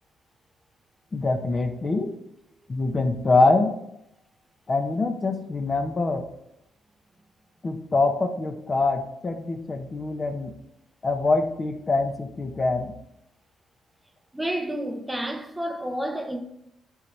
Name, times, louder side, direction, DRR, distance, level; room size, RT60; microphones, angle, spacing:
voice 1, 1.1-2.1 2.7-3.7 4.7-6.2 7.6-10.6 11.0-12.9, left 3 dB, 30° left, 0.9 m, -24 dB
voice 2, 14.3-16.4, right 1 dB, 10° right, 0.7 m, -30 dB
9.8 x 4.1 x 3.4 m
cardioid pair, 90°, 0 cm